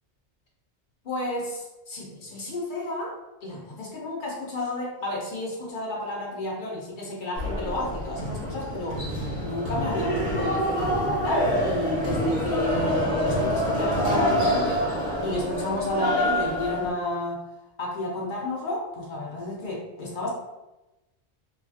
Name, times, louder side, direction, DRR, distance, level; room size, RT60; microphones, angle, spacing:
voice 1, 1.0-9.1 9.4-14.8 15.2-17.4 17.8-20.3, left 2 dB, 55° left, -2 dB, 0.7 m, -32 dB
sound 1, 7.4-16.9, equal, 80° right, 1.4 m, -26 dB
3.1 x 2.4 x 2.4 m, 1.0 s
omnidirectional pair, 1.1 m